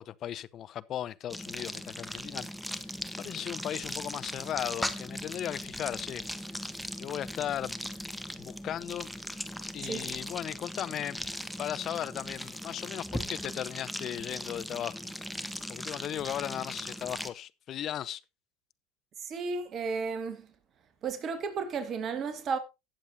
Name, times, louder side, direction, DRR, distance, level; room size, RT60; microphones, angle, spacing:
voice 1, 0.0-2.5 3.2-6.3 7.0-7.8 8.4-9.1 9.7-11.2 11.6-15.0 15.7-18.2, left 11 dB, 45° left, 0.6 m, -36 dB
sound 1, 1.3-17.3, equal, ahead, 1.1 m, -39 dB
voice 2, 19.2-20.5 21.0-22.6, right 5 dB, 40° right, 1.8 m, -33 dB
17.5 x 7.4 x 2.7 m
hypercardioid pair, 85°, 0 cm